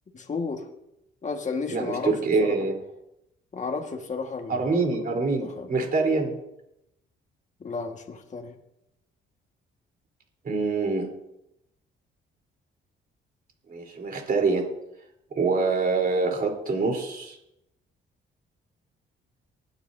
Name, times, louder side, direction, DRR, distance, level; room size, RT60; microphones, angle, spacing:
voice 1, 0.1-0.6 1.2-2.1 2.4-2.6 3.5-5.7 7.6-8.5, left 4 dB, 40° left, 4 dB, 1.7 m, -33 dB
voice 2, 1.7-2.8 4.5-6.4 10.4-11.1 13.7-14.7 15.3-17.4, right 4 dB, 45° right, 1 dB, 3.7 m, -25 dB
19.5 x 9.8 x 2.7 m, 0.84 s
cardioid pair, 90°, 20 cm